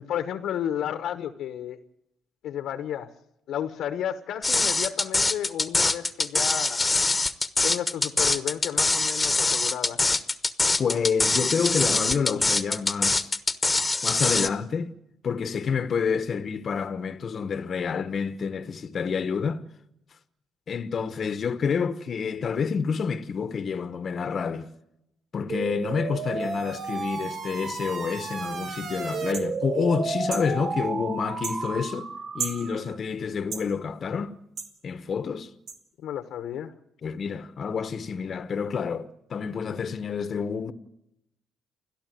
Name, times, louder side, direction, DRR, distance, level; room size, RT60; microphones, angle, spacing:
voice 1, 0.0-1.8 2.4-3.1 3.5-6.9 7.6-10.0 36.0-36.7, left 10 dB, 75° left, 1.2 m, -32 dB
sound 1, 4.4-14.5, left 3 dB, 15° left, 1.3 m, -23 dB
voice 2, 10.8-13.3 14.0-14.9 15.2-19.6 20.7-24.7 25.3-32.1 32.3-34.3 34.8-35.5 37.0-40.7, left 6 dB, 45° left, 1.1 m, -28 dB
sound 2, 25.5-33.0, right 5 dB, 50° right, 1.6 m, -33 dB
sound 3, 29.3-29.5 30.3-30.5 31.4-31.6 32.4-32.6 33.5-33.7 34.6-34.7 35.7-35.8, right 5 dB, 70° right, 2.8 m, -33 dB
29.5 x 12.0 x 9.3 m
cardioid pair, 95°, 0 cm